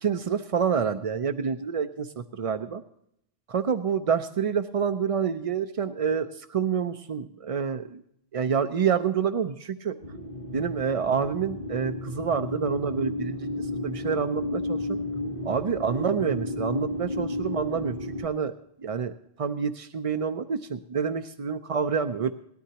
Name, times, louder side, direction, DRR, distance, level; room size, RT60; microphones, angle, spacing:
voice 1, 0.0-2.8 3.5-8.0 8.3-9.9 10.5-15.0 15.4-18.5 18.8-19.1 19.4-22.3, right 6 dB, 55° right, 9 dB, 0.4 m, -28 dB
sound 1, 10.0-18.2, left 1 dB, 50° left, 1.4 m, -33 dB
19.0 x 13.0 x 2.9 m, 0.73 s
omnidirectional pair, 1.2 m